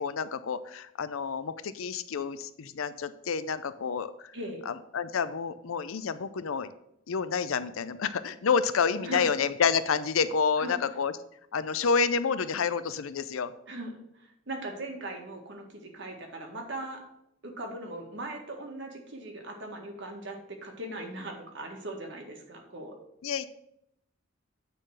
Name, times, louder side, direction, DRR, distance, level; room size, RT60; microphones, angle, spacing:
voice 1, 0.0-4.3 4.7-6.7 7.1-11.1 11.5-13.5 23.2-23.5, left 6 dB, 75° left, 13 dB, 0.5 m, -29 dB
voice 2, 14.5-17.0 17.4-22.9, right 1 dB, 60° right, 2 dB, 1.7 m, -39 dB
9.1 x 3.9 x 6.5 m, 0.77 s
head